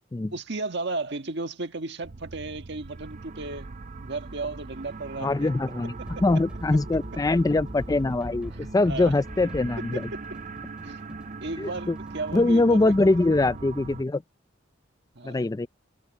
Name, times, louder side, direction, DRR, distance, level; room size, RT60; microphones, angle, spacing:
voice 1, 0.3-3.7 4.0-5.5 8.9-9.1 9.9-10.2 10.8-11.0 11.4-12.9 15.1-15.5, right 3 dB, 60° right, 1.5 m, -34 dB
sound 1, 2.0-14.0, right 3 dB, 40° right, 0.6 m, -41 dB
voice 2, 5.2-5.9 6.2-10.0 11.6-12.0 12.3-14.2 15.2-15.7, left 2 dB, 20° left, 0.4 m, -23 dB
sound 2, 6.0-13.6, equal, 5° right, 3.5 m, -42 dB
head